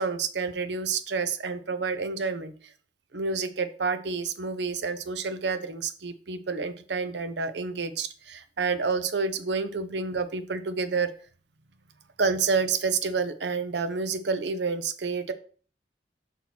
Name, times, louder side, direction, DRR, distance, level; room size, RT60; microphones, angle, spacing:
voice 1, 0.0-2.5 3.1-11.1 12.2-15.3, right 4 dB, 75° right, 11 dB, 0.7 m, -29 dB
5.5 x 4.3 x 6.0 m, 0.43 s
head